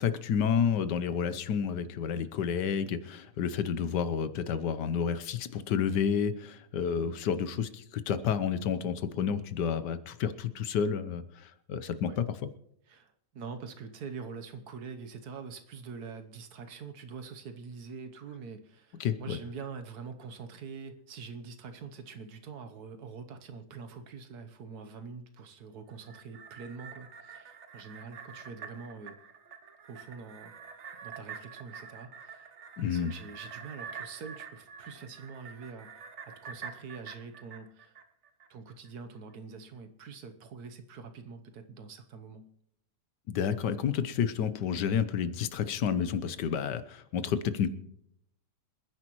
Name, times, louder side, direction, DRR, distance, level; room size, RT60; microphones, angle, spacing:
voice 1, 0.0-12.2 19.0-19.4 32.8-33.1 43.3-47.7, left 7 dB, 85° left, 13 dB, 1.5 m, -30 dB
voice 2, 12.9-29.2 29.9-30.5 31.0-32.5 32.8-35.9 36.3-37.9 38.5-42.4 47.4-47.5, right 5 dB, 70° right, 8 dB, 1.5 m, -45 dB
sound 1, 25.9-38.5 38.8-38.9, right 6 dB, 50° right, 1.1 m, -47 dB
27.0 x 10.0 x 3.1 m, 0.77 s
omnidirectional pair, 1.8 m